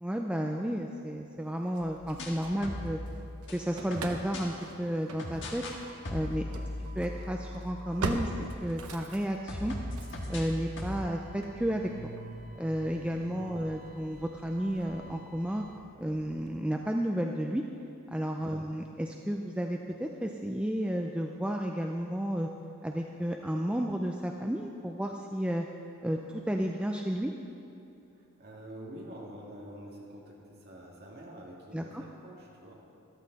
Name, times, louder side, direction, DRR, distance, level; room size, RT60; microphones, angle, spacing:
voice 1, 0.0-3.0 3.5-5.6 6.1-6.5 7.0-8.3 8.6-9.8 10.3-11.9 12.6-15.6 16.0-17.6 18.1-22.5 22.8-25.7 26.0-27.3 31.7-32.0, equal, 5° right, 2 dB, 0.4 m, -32 dB
sound 1, 1.8-4.5 5.2-5.8 6.0-9.0 9.5-11.1, left 1 dB, 55° left, 1.5 m, -39 dB
Engine starting / Slam, 1.8-3.1 3.4-16.5, right 2 dB, 90° right, 0.9 m, -43 dB
voice 2, 28.1-32.8, right 1 dB, 45° right, -3 dB, 2.3 m, -47 dB
13.5 x 12.5 x 4.1 m, 2.8 s
head